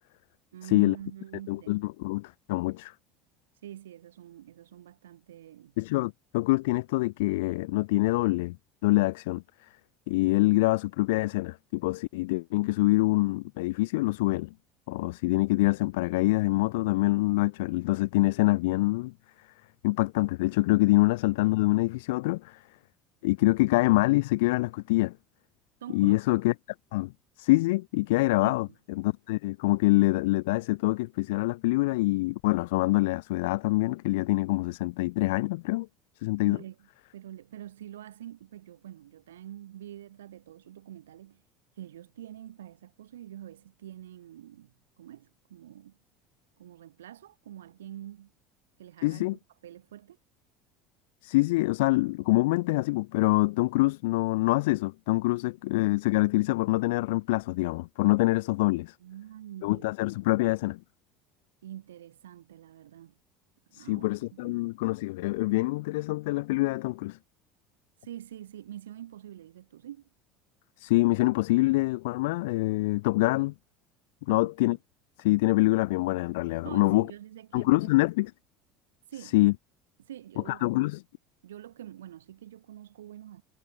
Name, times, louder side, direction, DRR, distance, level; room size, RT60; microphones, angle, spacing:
voice 1, 0.5-1.8 3.6-5.7 25.8-26.2 28.4-28.7 36.4-36.9 37.1-41.4 41.8-46.0 46.6-48.3 48.8-49.3 49.6-50.2 55.4-55.5 59.0-59.8 61.6-63.1 63.7-64.6 68.0-70.1 74.3-74.8 76.6-77.9 79.1-79.4 80.0-80.8 81.4-83.4, right 12 dB, 75° right, 7.8 m, -45 dB
voice 2, 1.5-2.9 5.8-8.6 8.8-9.4 10.1-14.5 14.9-19.1 19.8-22.6 23.2-25.2 25.9-26.5 26.9-27.1 27.4-28.7 28.9-35.9 36.2-36.6 49.0-49.4 51.2-58.9 59.6-60.8 63.7-67.2 70.8-73.5 74.3-74.8 75.2-77.1 77.5-78.3 79.3-79.5 80.5-81.0, left 21 dB, 65° left, 1.7 m, -25 dB
figure-of-eight pair, 70°, 0 cm